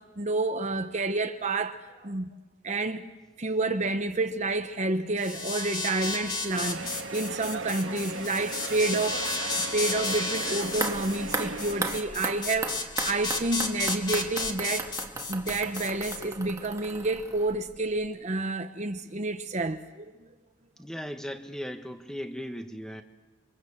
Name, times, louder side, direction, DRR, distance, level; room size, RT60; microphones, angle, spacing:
voice 1, 0.0-2.3 2.6-3.1 3.4-9.4 9.7-14.9 15.3-20.1, right 2 dB, 35° right, 1.0 m, -29 dB
sound 1, 5.2-16.2, left 3 dB, 20° left, 2.3 m, -33 dB
sound 2, 6.5-12.0, right 3 dB, 80° right, 1.8 m, -37 dB
sound 3, 10.7-17.8 18.0-18.1, right 3 dB, 15° right, 1.9 m, -36 dB
voice 2, 20.8-23.0, equal, 5° left, 1.7 m, -37 dB
28.5 x 26.0 x 7.4 m
head